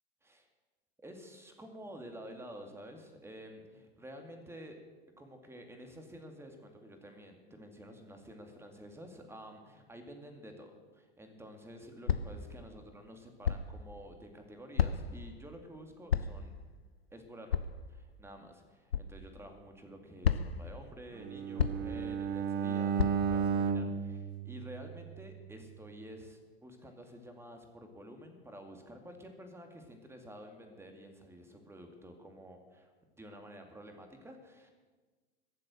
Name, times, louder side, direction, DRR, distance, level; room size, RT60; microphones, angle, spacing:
voice 1, 1.0-4.7 5.2-16.5 17.1-17.6 17.9-32.9 33.2-34.7, equal, 10° right, 4 dB, 2.3 m, -50 dB
sound 1, 12.1-12.4 13.4-13.8 14.8-15.2 16.1-16.5 17.5-17.8 18.9-19.1 20.2-20.7 21.6-22.0 23.0-23.4, left 7 dB, 80° left, 0.7 m, -31 dB
Bowed string instrument, 21.2-25.3, right 6 dB, 35° right, 0.9 m, -34 dB
22.0 x 7.7 x 6.3 m, 1.3 s
figure-of-eight pair, 90°, 30 cm